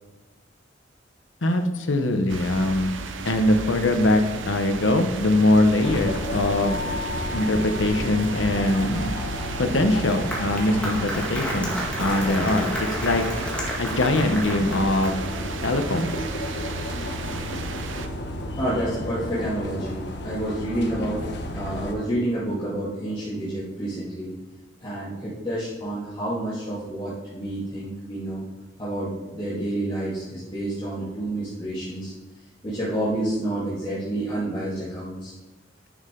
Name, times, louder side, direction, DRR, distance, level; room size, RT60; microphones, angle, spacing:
voice 1, 1.4-3.0 3.3-6.8 7.3-9.1 9.6-12.7 13.0-13.2 13.8-15.2 15.6-16.1, left 1 dB, 85° left, 6 dB, 1.0 m, -22 dB
sound 1, 2.3-18.1, right 4 dB, 85° right, 0.8 m, -34 dB
sound 2, 5.8-21.9, left 1 dB, 65° left, 1.2 m, -33 dB
Applause, 9.9-15.3, equal, 5° left, 2.0 m, -32 dB
voice 2, 18.5-21.3 21.5-24.3 24.8-28.4 28.8-32.1 32.6-35.3, right 1 dB, 25° left, -11 dB, 2.4 m, -29 dB
10.5 x 6.7 x 3.8 m, 1.2 s
head